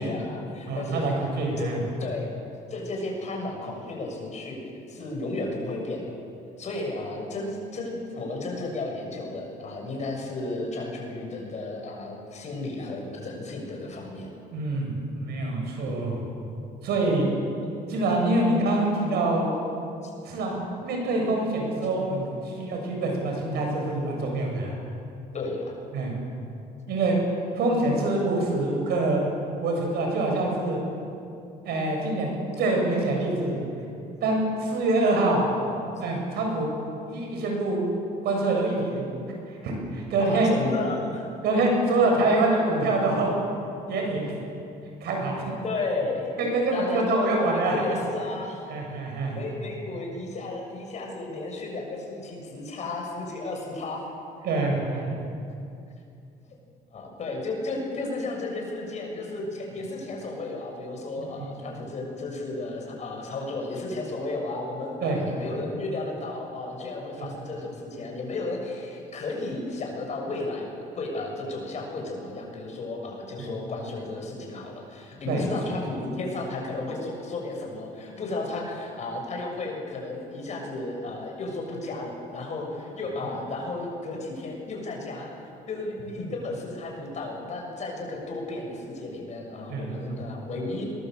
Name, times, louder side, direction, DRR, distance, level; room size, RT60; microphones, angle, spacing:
voice 1, 0.0-1.1 1.6-1.7 2.0-2.4 2.7-4.6 4.9-6.2 6.6-14.3 20.0-20.1 25.3-25.7 40.2-41.2 45.6-46.3 46.7-48.7 49.3-54.0 56.9-70.7 71.0-85.3 85.7-90.8, left 2 dB, 45° left, 0 dB, 7.0 m, -33 dB
voice 2, 0.7-1.8 14.5-16.2 16.8-17.3 17.9-19.5 20.2-20.6 20.8-24.7 25.9-26.1 26.9-27.2 27.5-29.2 29.6-30.8 31.6-33.6 34.2-35.4 36.0-36.7 37.1-37.8 38.2-39.0 39.5-40.5 41.4-43.3 43.9-44.4 45.0-45.4 46.4-47.8 48.7-49.4 54.4-55.1 61.4-61.5 65.0-65.2 67.2-67.3 73.4-73.5 75.3-75.4 89.7-90.2, right 2 dB, 75° right, 0 dB, 7.5 m, -25 dB
21.5 x 20.5 x 8.0 m, 2.6 s
cardioid pair, 110°, 17 cm